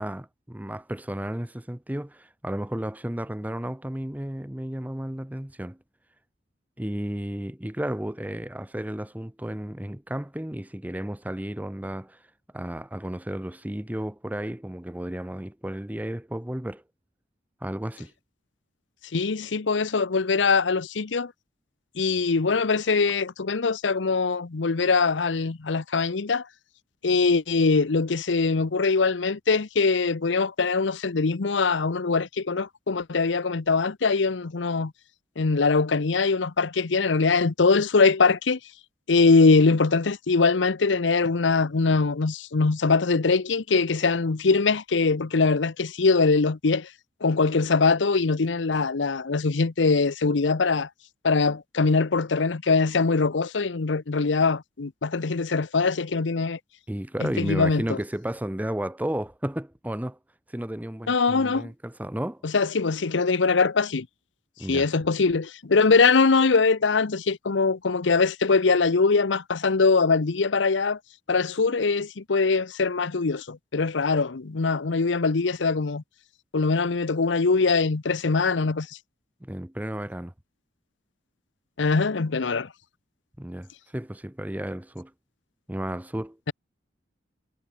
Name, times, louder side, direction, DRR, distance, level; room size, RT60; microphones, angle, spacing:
voice 1, 0.0-5.8 6.8-12.2 12.5-16.8 17.6-18.1 56.9-60.2 60.5-62.4 64.6-64.9 79.4-80.3 83.4-85.1 85.7-86.5, right 1 dB, 10° right, 0.8 m, -33 dB
voice 2, 19.1-21.3 22.0-26.5 27.0-34.9 35.4-38.6 39.1-46.9 47.2-50.9 51.2-56.6 57.2-58.0 61.1-61.7 62.4-64.1 64.7-71.0 71.3-76.0 76.5-78.9 81.8-82.7, left 4 dB, 80° left, 0.8 m, -22 dB
head